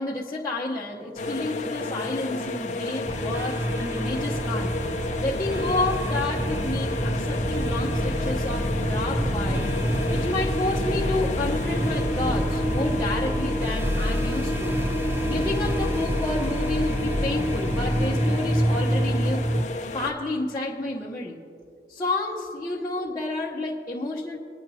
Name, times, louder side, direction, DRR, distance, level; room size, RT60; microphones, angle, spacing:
voice 1, 0.0-4.7 5.2-9.7 10.1-14.8 15.3-19.4 19.9-21.4 21.9-24.4, left 2 dB, 20° left, -6 dB, 0.9 m, -30 dB
sound 1, 1.2-20.1, left 2 dB, 40° left, 0.6 m, -32 dB
sound 2, 3.1-19.7, equal, 10° right, 0.4 m, -27 dB
24.0 x 10.5 x 2.7 m, 2.4 s
head